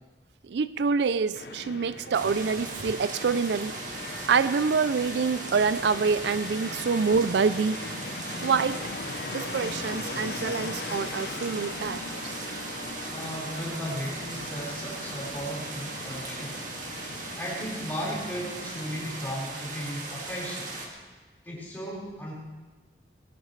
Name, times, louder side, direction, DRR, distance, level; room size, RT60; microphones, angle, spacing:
voice 1, 0.5-3.8 4.3-7.8 8.4-8.8 9.3-12.4, right 5 dB, 80° right, 15 dB, 0.4 m, -26 dB
Fixed-wing aircraft airplane, 1.3-19.4, left 3 dB, 65° left, 0.8 m, -40 dB
sound 1, 2.1-20.9, right 2 dB, 45° right, 2.1 m, -38 dB
voice 2, 13.1-16.7 17.3-20.8 21.4-22.3, equal, 10° left, -6 dB, 4.7 m, -35 dB
19.5 x 17.5 x 3.2 m, 1.3 s
head